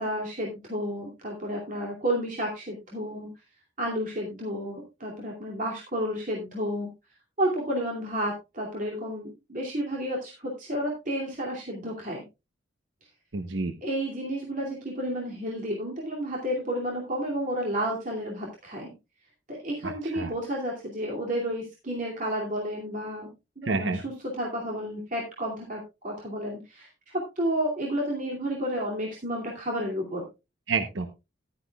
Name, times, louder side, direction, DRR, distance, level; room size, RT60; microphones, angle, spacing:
voice 1, 0.0-3.3 3.8-6.9 7.4-12.2 13.8-18.9 19.5-23.3 23.6-26.9 27.1-30.2, equal, 45° right, -2 dB, 2.5 m, -31 dB
voice 2, 13.3-13.8 19.8-20.3 23.6-24.0 30.7-31.1, right 4 dB, 85° right, 8 dB, 0.9 m, -29 dB
14.0 x 11.5 x 2.3 m, 0.26 s
head